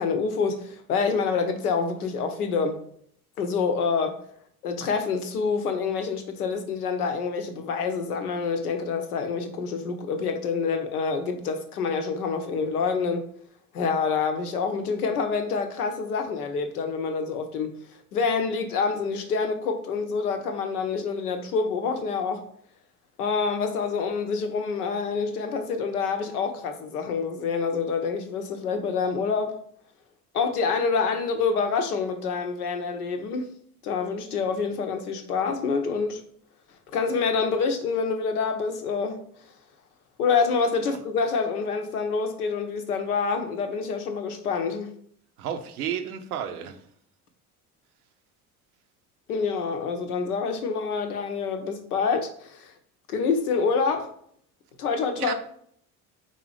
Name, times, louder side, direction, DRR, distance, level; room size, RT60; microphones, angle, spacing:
voice 1, 0.0-2.8 3.4-4.2 4.6-13.3 13.7-17.7 18.1-22.5 23.2-29.6 30.3-33.5 33.8-36.2 36.9-39.2 40.2-44.9 49.3-52.7 53.1-54.1 54.8-55.3, left 5 dB, 75° left, 0.7 m, -27 dB
voice 2, 45.4-46.8 55.2-55.3, right 9 dB, 75° right, 0.6 m, -32 dB
3.9 x 2.7 x 4.8 m
figure-of-eight pair, 55°, 45 cm